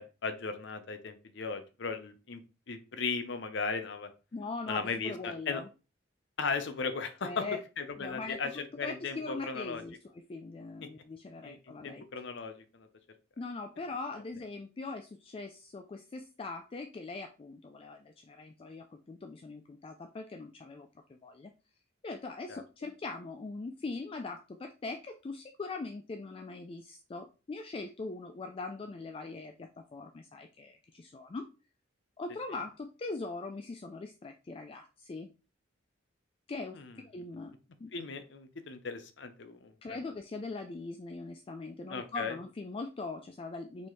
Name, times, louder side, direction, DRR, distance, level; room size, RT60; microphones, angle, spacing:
voice 1, 0.0-2.4 2.7-4.1 4.7-5.6 6.4-7.4 7.8-9.8 11.4-12.9 22.5-22.6 36.7-36.9 37.9-40.0 41.9-42.3, left 4 dB, 65° left, 9 dB, 0.7 m, -37 dB
voice 2, 4.3-5.7 7.2-7.6 8.0-12.1 13.4-21.5 22.0-31.5 32.2-35.3 36.5-37.5 37.8-37.9 39.8-43.9, left 3 dB, 30° left, 5 dB, 0.3 m, -41 dB
4.3 x 3.1 x 3.1 m, 0.32 s
head